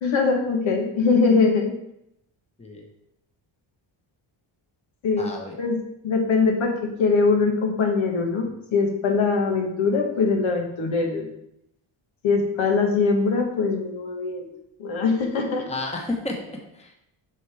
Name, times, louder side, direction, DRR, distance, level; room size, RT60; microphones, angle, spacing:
voice 1, 0.0-1.8 5.0-5.3 5.6-11.3 12.2-14.5 14.8-15.7, left 4 dB, 65° left, 2 dB, 1.5 m, -22 dB
voice 2, 5.2-5.6 15.7-16.9, left 2 dB, 15° left, 0 dB, 1.2 m, -32 dB
8.2 x 5.9 x 3.5 m, 0.78 s
cardioid pair, 120°, 50 cm